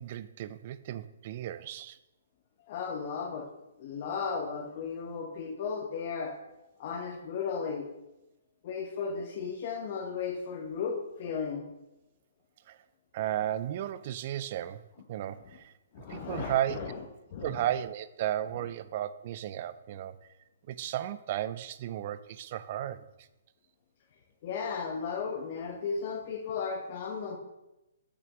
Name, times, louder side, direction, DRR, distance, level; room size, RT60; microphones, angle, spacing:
voice 1, 0.0-2.0 12.7-12.8 13.1-15.7 16.1-16.8 17.4-20.2 20.7-23.3, right 12 dB, 40° right, 0.5 m, -34 dB
voice 2, 2.7-3.5 3.8-6.3 6.8-7.9 8.6-11.6 15.9-17.0 17.3-17.6 24.4-27.4, left 5 dB, 45° left, 1.1 m, -35 dB
6.1 x 6.0 x 6.1 m
hypercardioid pair, 155°, 0 cm